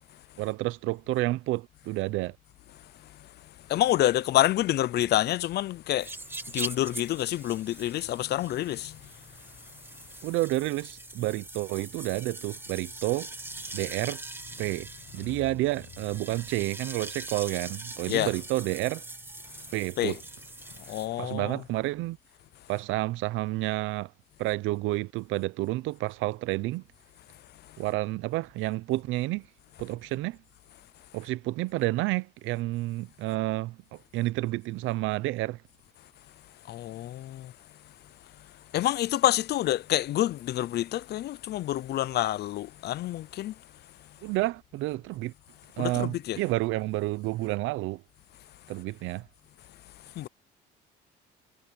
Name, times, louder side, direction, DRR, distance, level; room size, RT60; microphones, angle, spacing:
voice 1, 0.4-2.4 10.2-13.3 13.7-14.2 14.6-19.0 19.7-20.2 21.2-22.2 22.7-24.1 24.4-26.8 27.8-29.5 29.8-30.4 31.1-35.6 44.2-45.3 45.8-48.0 48.7-49.3, right 18 dB, 80° right, 0.8 m, -30 dB
voice 2, 3.7-6.1 6.5-9.0 18.1-18.3 20.0-20.2 20.9-21.6 36.7-37.5 38.7-43.5 45.8-46.4 50.2-50.3, left 14 dB, 55° left, 0.6 m, -27 dB
sound 1, 6.0-21.1, right 2 dB, 10° right, 2.4 m, -42 dB
cardioid pair, 120°, 20 cm